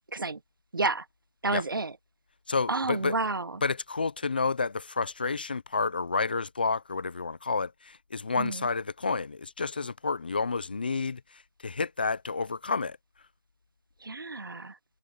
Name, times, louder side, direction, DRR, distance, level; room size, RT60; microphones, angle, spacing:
voice 1, 0.7-1.1 1.4-2.0 2.7-3.6 8.3-8.7 14.0-14.8, right 3 dB, 70° right, 1.2 m, -30 dB
voice 2, 2.5-3.2 3.6-13.0, left 4 dB, 25° left, 0.6 m, -30 dB
figure-of-eight pair, 170°, 12 cm